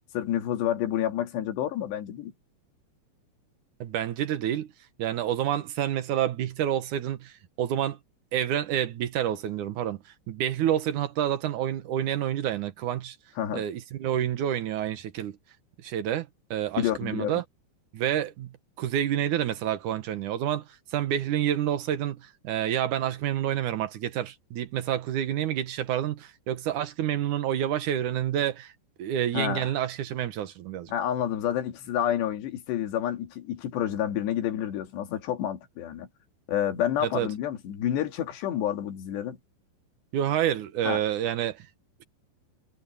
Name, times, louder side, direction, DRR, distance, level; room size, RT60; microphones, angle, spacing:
voice 1, 0.1-2.3 13.4-13.6 16.8-17.4 29.3-29.7 30.9-36.1 36.5-39.4 40.8-41.0, left 10 dB, 70° left, 4.3 m, -29 dB
voice 2, 3.8-4.7 5.0-8.0 8.3-10.0 10.3-13.2 13.5-15.4 15.8-17.4 17.9-18.5 18.8-28.7 29.0-30.9 37.0-37.3 40.1-41.7, right 10 dB, 65° right, 2.0 m, -28 dB
omnidirectional pair, 5.2 m